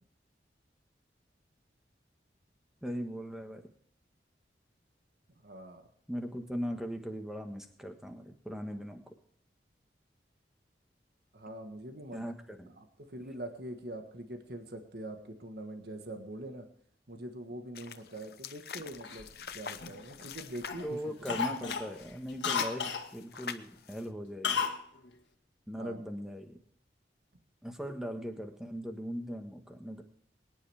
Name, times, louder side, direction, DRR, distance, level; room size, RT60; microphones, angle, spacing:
voice 1, 2.8-3.6 6.1-9.0 12.1-12.7 20.8-24.6 25.7-26.6 27.6-30.0, equal, 5° right, 5 dB, 1.4 m, -39 dB
voice 2, 5.4-5.9 11.3-12.2 12.7-16.7 17.1-19.3 19.5-21.0 21.4-21.5 25.8-26.0, right 1 dB, 65° right, 5 dB, 1.4 m, -43 dB
sound 1, 17.7-24.1, left 7 dB, 60° left, 0.8 m, -45 dB
Cough, 19.0-20.3 20.7-20.9 21.2-23.1 24.4-24.8 25.1-25.2, left 6 dB, 90° left, 1.7 m, -33 dB
23.5 x 10.0 x 3.5 m, 0.64 s
head